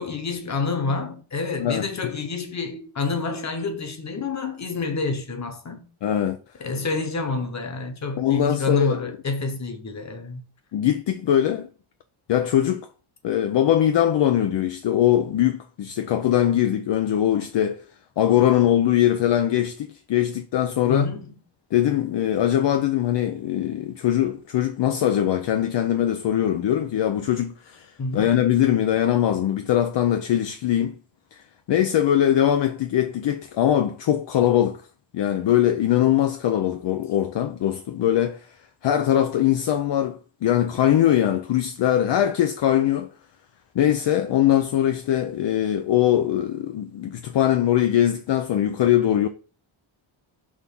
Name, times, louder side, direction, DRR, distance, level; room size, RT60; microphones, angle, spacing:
voice 1, 0.0-5.9 6.6-10.4 20.9-21.3 28.0-28.4, left 3 dB, 35° left, 1.2 m, -28 dB
voice 2, 6.0-6.4 8.2-9.0 10.7-11.7 12.3-12.9 13.2-17.8 18.2-21.1 21.7-30.9 31.3-31.4 31.7-34.8 35.1-38.5 38.8-43.1 43.7-49.3, left 11 dB, 60° left, 0.6 m, -21 dB
6.4 x 3.5 x 5.4 m
wide cardioid pair, 170°, 48 cm